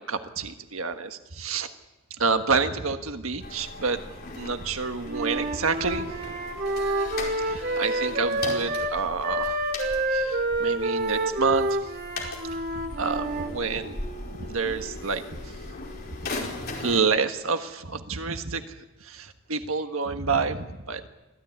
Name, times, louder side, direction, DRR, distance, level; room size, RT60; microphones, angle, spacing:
voice 1, 0.0-1.7 2.2-4.0 4.4-6.1 7.4-9.6 10.1-11.7 12.5-12.6 13.0-14.0 14.3-15.2 16.8-21.0, right 4 dB, 80° right, 7 dB, 1.5 m, -28 dB
sound 1, 3.4-17.0, left 2 dB, 45° left, 4.9 m, -38 dB
Wind instrument woodwind instrument, 5.1-9.0 9.2-13.5, right 1 dB, 45° right, 2.4 m, -28 dB
25.0 x 16.0 x 9.6 m, 1.0 s
head